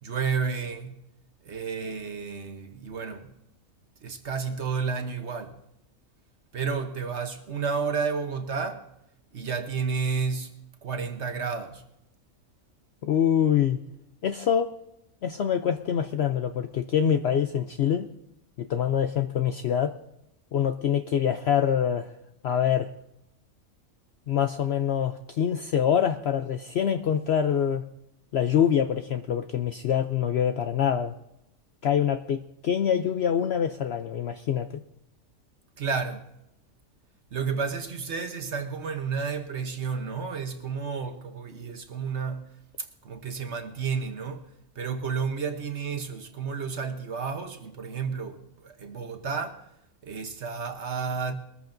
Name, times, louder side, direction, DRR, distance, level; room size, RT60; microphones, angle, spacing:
voice 1, 0.0-1.0 1.4-3.3 4.0-5.6 6.5-8.9 9.3-10.5 10.8-11.8 35.8-36.3 37.3-42.5 42.8-44.5 44.8-49.6 50.0-51.3, right 5 dB, 55° right, 1.3 m, -31 dB
voice 2, 13.0-13.8 14.2-14.7 15.2-18.1 18.6-20.0 20.5-22.1 22.4-22.9 24.3-27.8 28.3-31.1 31.8-34.8, left 9 dB, 60° left, 0.7 m, -25 dB
21.5 x 14.0 x 2.6 m
omnidirectional pair, 1.5 m